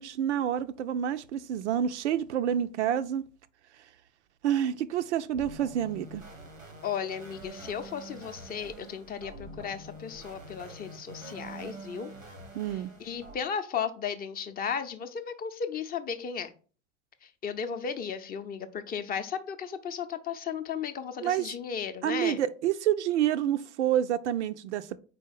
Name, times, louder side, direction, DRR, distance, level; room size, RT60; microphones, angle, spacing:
voice 1, 0.0-3.3 4.4-6.2 12.5-12.9 21.2-21.5 22.0-25.0, right 10 dB, 65° right, 0.5 m, -28 dB
sound 1, 5.3-13.3, right 1 dB, 90° right, 1.1 m, -46 dB
voice 2, 6.8-12.1 13.0-16.5 17.4-22.4, left 7 dB, 25° left, 0.6 m, -35 dB
4.6 x 4.1 x 5.6 m
figure-of-eight pair, 75°, 38 cm